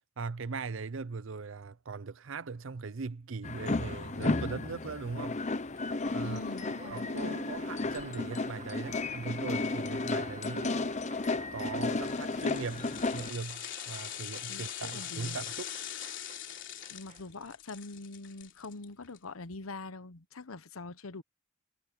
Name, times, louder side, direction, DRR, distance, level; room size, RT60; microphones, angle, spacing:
voice 1, 0.2-5.4 6.1-6.4 6.9-10.9 11.5-15.7, right 4 dB, 65° right, 0.6 m, -39 dB
sound 1, 3.4-13.3, left 3 dB, 35° left, 0.7 m, -33 dB
Applause, 5.6-17.5, right 4 dB, 35° right, 2.0 m, -52 dB
voice 2, 6.2-7.4 14.5-15.4 16.9-21.2, left 3 dB, 90° left, 1.1 m, -44 dB
sound 2, 11.9-19.2 19.5-19.6, left 11 dB, 60° left, 3.4 m, -42 dB
head